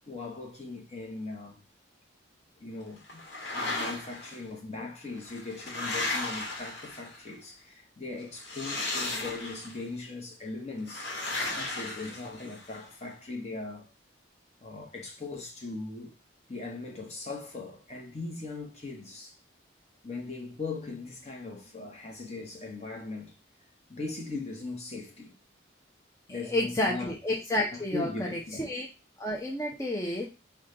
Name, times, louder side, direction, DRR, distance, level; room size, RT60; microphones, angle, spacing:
voice 1, 0.1-1.6 2.6-3.2 3.5-13.9 14.6-16.1 16.5-19.4 20.0-23.4 23.9-25.4 26.3-27.1 27.7-28.6, left 3 dB, 35° left, 1.0 m, -39 dB
sound 1, 3.1-4.3 5.1-7.3 8.4-9.8 10.9-12.8, left 2 dB, 60° left, 1.3 m, -35 dB
voice 2, 26.3-28.9 29.2-30.2, left 1 dB, 15° left, 0.6 m, -30 dB
4.9 x 2.3 x 3.7 m
head